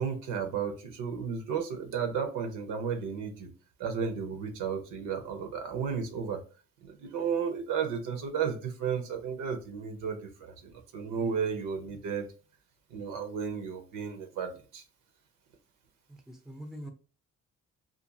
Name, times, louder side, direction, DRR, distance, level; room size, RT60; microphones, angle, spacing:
voice 1, 0.0-3.5 3.8-6.4 6.8-12.3 12.9-14.8, right 6 dB, 85° right, 5 dB, 0.7 m, -33 dB
voice 2, 16.1-16.9, right 1 dB, ahead, 5 dB, 0.6 m, -44 dB
2.5 x 2.5 x 2.6 m, 0.35 s
cardioid pair, 90°, 30 cm